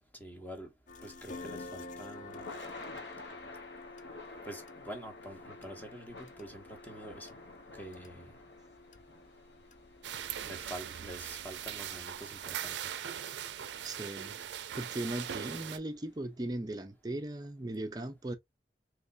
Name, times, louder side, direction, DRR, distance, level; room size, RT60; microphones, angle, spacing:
voice 1, 0.2-0.7 1.0-2.5 4.5-7.3 7.7-8.3 10.4-12.8, right 1 dB, 10° left, 0.9 m, -46 dB
sound 1, 0.9-12.7, left 3 dB, 45° left, 0.4 m, -51 dB
Thunder / Rain, 1.7-15.6, left 3 dB, 75° left, 1.1 m, -52 dB
sound 2, 10.0-15.8, right 9 dB, 75° right, 0.4 m, -40 dB
voice 2, 13.8-14.4 14.8-18.4, right 1 dB, 20° right, 0.5 m, -38 dB
3.3 x 3.1 x 2.6 m
head